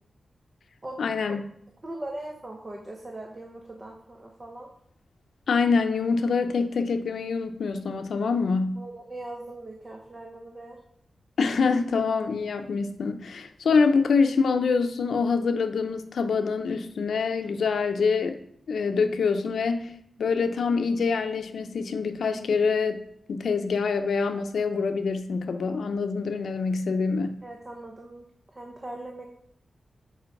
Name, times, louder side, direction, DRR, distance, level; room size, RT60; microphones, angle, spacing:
voice 1, 1.0-1.4 5.5-8.8 11.4-18.4 18.7-19.9 20.2-23.0 23.3-27.3, left 5 dB, 90° left, 7 dB, 0.7 m, -25 dB
voice 2, 1.8-4.7 8.8-10.8 27.4-28.2 28.5-29.3, right 1 dB, 25° right, 1 dB, 1.1 m, -40 dB
7.6 x 5.0 x 6.0 m, 0.68 s
wide cardioid pair, 135°, 0 cm